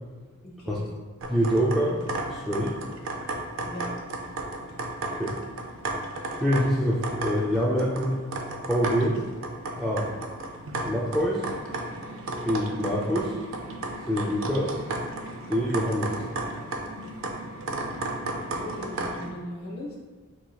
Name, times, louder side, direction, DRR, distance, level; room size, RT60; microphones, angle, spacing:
voice 1, 0.4-0.9 3.6-3.8 18.5-20.0, equal, 45° left, -5 dB, 1.2 m, -38 dB
sound 1, 1.2-19.3, right 2 dB, 60° right, 0.5 m, -34 dB
voice 2, 1.3-2.0 2.3-2.8 5.1-5.3 6.4-8.2 8.7-9.2 9.8-10.1 10.9-11.4 12.4-13.4 14.1-14.8 15.5-16.2, equal, ahead, -7 dB, 0.3 m, -25 dB
5.4 x 3.0 x 2.3 m, 1.4 s
head